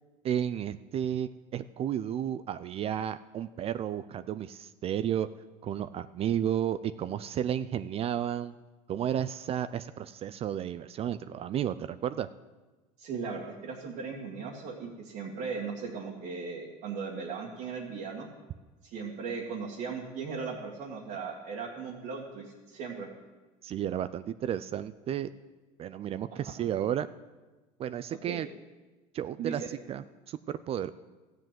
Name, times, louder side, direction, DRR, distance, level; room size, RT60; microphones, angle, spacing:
voice 1, 0.2-5.3 5.6-8.5 8.9-12.3 23.6-25.3 25.8-27.1 27.8-28.5 29.1-30.9, right 10 dB, 40° right, 14 dB, 0.4 m, -32 dB
voice 2, 13.0-18.3 18.8-23.1 26.3-26.7 28.1-28.4 29.4-29.5, right 5 dB, 60° right, -4 dB, 2.0 m, -38 dB
14.0 x 7.7 x 7.6 m, 1.2 s
supercardioid pair, 110°, 16 cm